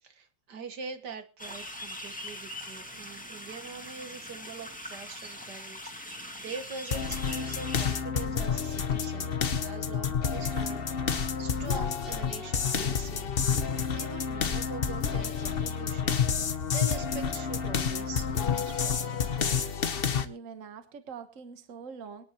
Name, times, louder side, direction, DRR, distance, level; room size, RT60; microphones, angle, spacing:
voice 1, 0.0-10.9 11.4-13.3 13.9-19.4, right 5 dB, 70° right, 8 dB, 2.0 m, -43 dB
sound 1, 1.4-8.0, left 1 dB, 5° left, 1.8 m, -42 dB
sound 2, 6.9-20.2, left 6 dB, 45° left, 0.9 m, -29 dB
voice 2, 20.2-22.2, right 6 dB, 50° right, 9 dB, 1.5 m, -44 dB
23.5 x 10.5 x 3.0 m, 0.32 s
omnidirectional pair, 1.9 m